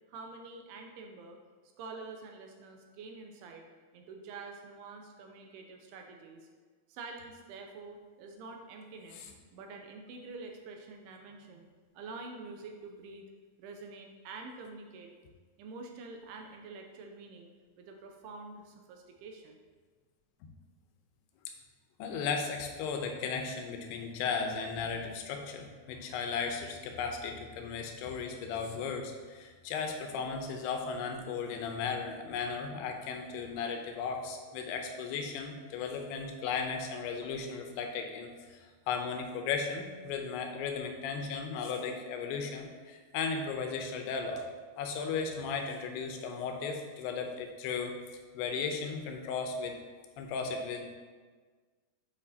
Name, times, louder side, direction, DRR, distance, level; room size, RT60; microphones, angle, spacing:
voice 1, 0.1-1.4 1.8-3.6 3.9-6.5 6.9-11.7 11.9-13.3 13.6-15.1 15.6-17.5 17.8-19.6, right 3 dB, 85° right, 2 dB, 2.5 m, -47 dB
voice 2, 22.0-44.4 44.8-47.9 48.3-49.8 50.2-51.0, left 5 dB, 80° left, 4 dB, 2.7 m, -36 dB
8.8 x 5.2 x 2.8 m, 1.5 s
omnidirectional pair, 4.8 m